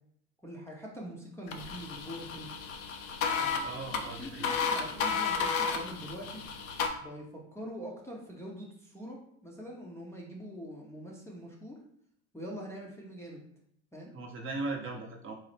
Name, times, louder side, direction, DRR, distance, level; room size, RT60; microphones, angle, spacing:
voice 1, 0.4-2.5 3.4-6.4 7.0-11.8 12.3-13.4 13.9-14.1, equal, 5° left, -4 dB, 0.6 m, -44 dB
sound 1, 1.5-6.9, left 5 dB, 75° left, 0.6 m, -33 dB
voice 2, 3.6-4.5 14.1-15.3, right 3 dB, 30° right, 1 dB, 0.7 m, -38 dB
3.9 x 2.0 x 3.2 m, 0.69 s
hypercardioid pair, 80°, 40 cm